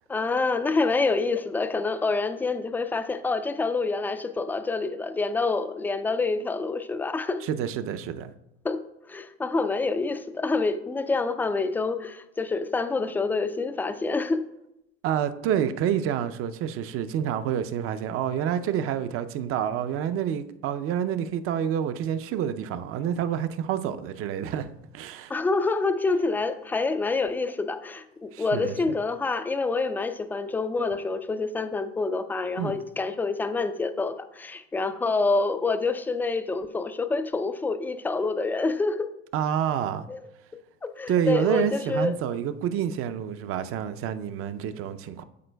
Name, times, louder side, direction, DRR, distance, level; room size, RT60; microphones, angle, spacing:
voice 1, 0.1-7.4 8.6-8.8 9.1-14.4 25.3-39.1 40.1-40.2 40.8-42.2, left 3 dB, 5° left, 0.3 m, -27 dB
voice 2, 7.4-8.3 15.0-25.3 28.3-29.0 32.6-32.8 39.3-40.1 41.1-45.2, right 9 dB, 40° right, 0.6 m, -28 dB
12.0 x 4.3 x 2.2 m
hypercardioid pair, 95°, 34 cm